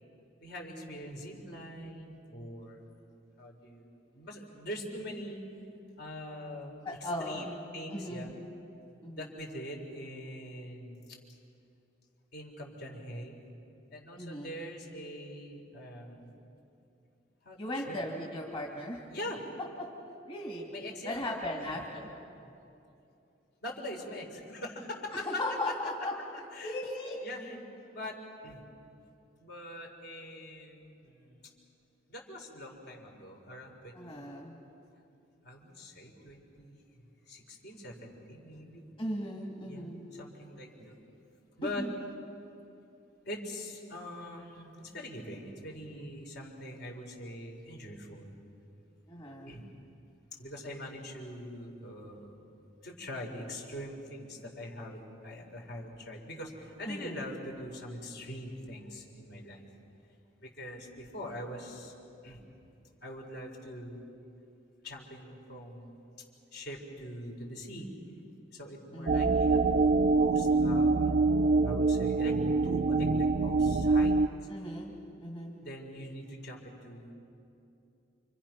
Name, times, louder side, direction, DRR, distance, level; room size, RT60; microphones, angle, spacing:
voice 1, 0.4-2.8 3.4-3.9 4.1-5.4 6.0-8.3 9.0-11.0 12.3-13.4 13.9-16.3 17.4-18.0 19.1-19.4 20.7-21.2 21.6-21.7 23.6-25.4 26.5-26.8 27.2-27.6 27.9-28.6 29.4-31.5 32.1-34.4 35.4-36.9 37.3-38.9 39.7-41.0 41.6-41.9 43.3-48.4 49.4-49.6 50.4-52.4 52.8-59.6 60.4-61.9 62.2-62.4 63.0-64.0 64.8-66.0 66.5-67.9 68.5-71.2 71.6-72.3 72.6-74.1 75.6-77.1, left 1 dB, 60° left, 1 dB, 4.4 m, -43 dB
voice 2, 6.8-7.5 7.9-8.3 9.0-9.3 14.2-14.5 17.6-19.0 19.8-19.9 20.3-20.7 21.0-22.1 22.3-22.5 25.3-26.1 26.6-27.2 33.9-34.6 39.0-40.0 41.6-41.9 49.1-49.6 56.9-57.2 68.9-69.4 74.5-75.6, left 1 dB, 30° left, -2 dB, 2.4 m, -37 dB
sound 1, 69.1-74.3, right 3 dB, 45° right, 0.5 m, -25 dB
29.0 x 26.0 x 6.0 m, 2.7 s
head